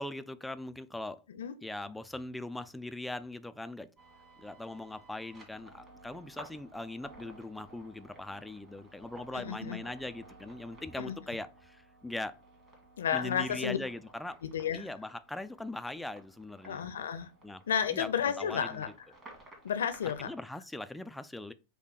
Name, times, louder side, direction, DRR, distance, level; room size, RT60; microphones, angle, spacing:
voice 1, 0.0-1.2 1.6-3.9 4.4-12.3 13.1-14.4 14.7-16.8 17.4-17.6 17.9-18.1 18.4-18.8 20.2-21.5, left 2 dB, 5° left, 0.3 m, -40 dB
sound 1, 4.0-20.3, right 2 dB, 25° right, 1.7 m, -55 dB
voice 2, 9.3-9.8 11.0-11.2 13.0-13.8 14.4-14.9 16.6-17.3 17.7-18.9 19.6-20.3, left 8 dB, 65° left, 0.6 m, -32 dB
5.0 x 2.2 x 4.8 m
figure-of-eight pair, 90°, 0 cm